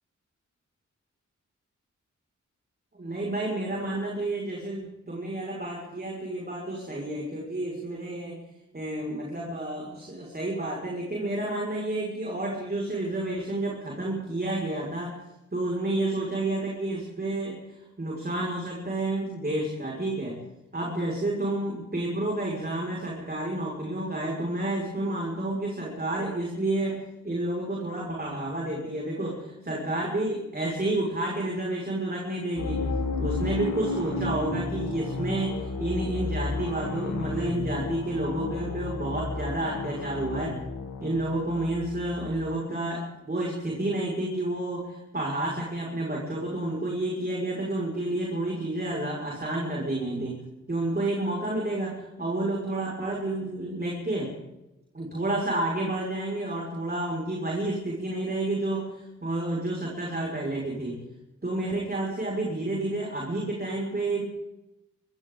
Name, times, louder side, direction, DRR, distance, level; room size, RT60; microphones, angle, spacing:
voice 1, 2.9-8.4 8.7-15.2 15.5-20.4 20.7-32.9 33.2-40.6 41.0-50.4 50.7-54.3 54.9-61.0 61.4-64.2, right 1 dB, 30° right, -3 dB, 5.7 m, -30 dB
sound 1, 32.6-42.5, left 3 dB, 85° left, 3.0 m, -32 dB
27.0 x 25.0 x 3.9 m, 0.95 s
wide cardioid pair, 100°, 29 cm